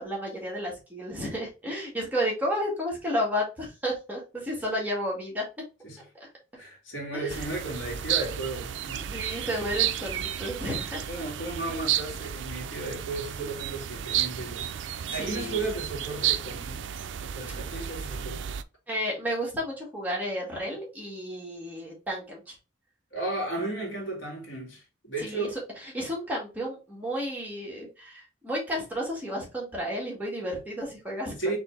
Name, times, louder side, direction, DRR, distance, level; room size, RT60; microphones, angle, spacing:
voice 1, 0.0-5.4 7.1-7.4 9.1-11.0 15.1-15.6 18.9-22.6 25.2-25.5 25.9-31.3, equal, 10° right, 1.9 m, -32 dB
voice 2, 6.6-9.2 11.1-14.7 15.1-16.8 17.2-18.4 23.1-25.5 31.4-31.6, right 2 dB, 80° left, 2.3 m, -34 dB
sound 1, 7.3-18.6, right 10 dB, 70° right, 0.4 m, -32 dB
4.2 x 3.4 x 3.3 m
head